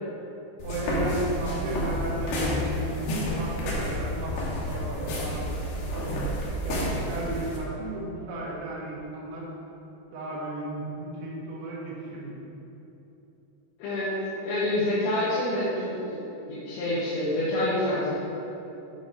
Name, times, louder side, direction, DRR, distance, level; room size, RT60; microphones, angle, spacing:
sound 1, 0.6-7.6, equal, 65° left, 2.7 m, -30 dB
voice 1, 0.6-6.1 6.7-9.4 10.1-12.4, right 2 dB, 80° right, -6 dB, 3.7 m, -34 dB
voice 2, 13.8-14.1 14.4-16.2 16.5-18.1, left 1 dB, 80° left, -10 dB, 3.6 m, -27 dB
9.2 x 4.0 x 5.2 m, 2.9 s
omnidirectional pair, 5.3 m